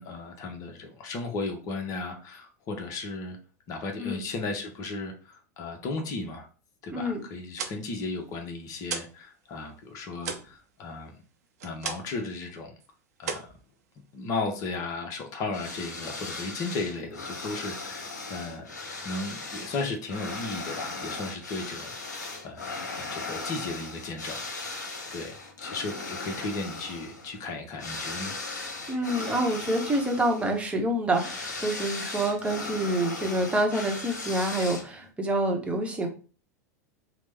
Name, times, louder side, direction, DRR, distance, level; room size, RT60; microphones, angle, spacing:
voice 1, 0.0-3.4 3.7-6.5 6.8-11.2 11.6-12.7 13.2-13.5 14.1-18.7 19.0-24.4 25.1-28.3, left 3 dB, 40° left, 4 dB, 0.7 m, -35 dB
voice 2, 6.9-7.2 28.9-36.1, right 1 dB, 15° right, 2 dB, 0.8 m, -27 dB
sound 1, 7.3-9.2 9.5-12.3 12.6-12.9 13.2-14.3, right 6 dB, 65° right, 0.6 m, -37 dB
sound 2, 15.5-35.1, left 3 dB, 80° left, 0.8 m, -38 dB
3.0 x 2.0 x 3.4 m, 0.37 s
figure-of-eight pair, 90°, 9 cm